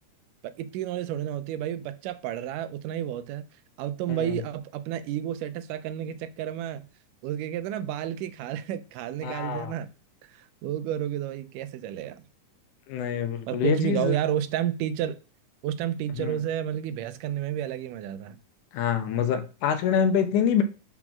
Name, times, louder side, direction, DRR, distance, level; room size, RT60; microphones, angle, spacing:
voice 1, 0.4-3.5 3.8-6.8 7.2-9.9 10.3-12.2 13.5-15.2 15.6-18.4, right 11 dB, 80° right, 2.1 m, -31 dB
voice 2, 4.1-4.4 9.2-9.7 12.9-14.2 16.2-16.4 18.7-20.6, left 8 dB, 80° left, 2.1 m, -26 dB
5.9 x 3.8 x 5.9 m
omnidirectional pair, 3.9 m